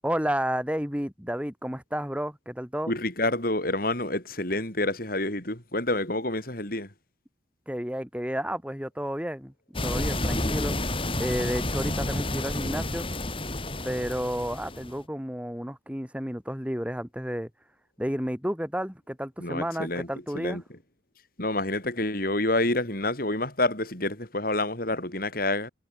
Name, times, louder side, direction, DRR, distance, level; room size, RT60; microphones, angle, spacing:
voice 1, 0.0-2.9 7.7-9.5 9.8-10.7 11.2-13.1 13.8-17.5 18.0-20.6, equal, 5° right, 4.3 m, -31 dB
voice 2, 2.9-6.9 19.4-20.1 20.3-20.8 21.4-25.7, left 2 dB, 50° left, 6.3 m, -28 dB
sound 1, 9.7-15.0, left 1 dB, 30° left, 6.4 m, -30 dB
head